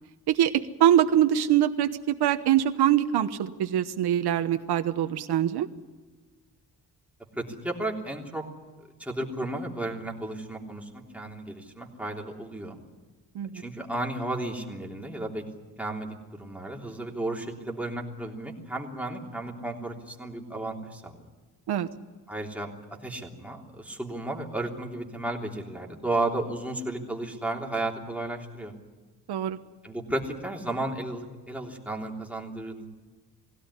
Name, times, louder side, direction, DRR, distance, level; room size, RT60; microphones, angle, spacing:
voice 1, 0.8-1.9 2.2-5.7 13.3-13.6 21.7-21.9 29.3-29.6, right 11 dB, 80° right, 8 dB, 1.1 m, -23 dB
voice 2, 7.4-8.4 8.8-12.8 13.5-15.4 15.8-21.2 22.3-22.7 23.0-28.7 29.8-32.9, right 2 dB, 5° right, -1 dB, 3.3 m, -33 dB
22.0 x 16.5 x 9.9 m, 1.3 s
cardioid pair, 120°, 39 cm